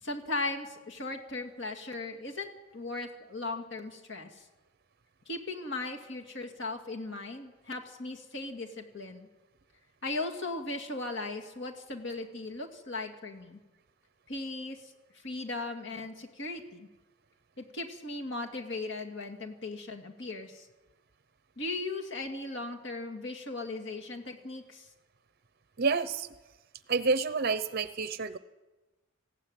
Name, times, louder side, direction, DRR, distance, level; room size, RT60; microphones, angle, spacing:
voice 1, 0.0-4.5 5.3-9.3 10.0-13.6 14.3-16.9 17.6-20.7 21.6-24.9, left 2 dB, 55° left, 3 dB, 2.3 m, -38 dB
voice 2, 25.8-26.3 26.9-28.4, right 4 dB, 45° right, 13 dB, 0.7 m, -29 dB
19.0 x 15.5 x 9.2 m, 1.1 s
head